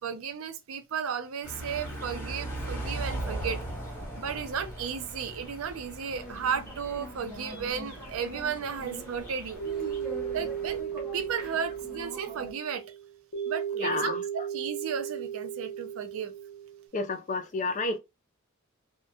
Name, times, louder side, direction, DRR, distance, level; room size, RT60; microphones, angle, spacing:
voice 1, 0.0-3.6 4.2-9.6 10.3-10.8 11.1-12.8 13.4-16.3, right 7 dB, 75° right, 0.4 m, -34 dB
sound 1, 1.4-10.8, right 1 dB, 10° left, 1.2 m, -39 dB
sound 2, 6.1-12.5, right 1 dB, 5° right, 0.9 m, -44 dB
sound 3, 9.6-16.9, right 9 dB, 85° left, 1.0 m, -35 dB
voice 2, 13.8-14.2 16.9-18.0, left 3 dB, 35° left, 0.4 m, -30 dB
2.7 x 2.1 x 2.3 m
head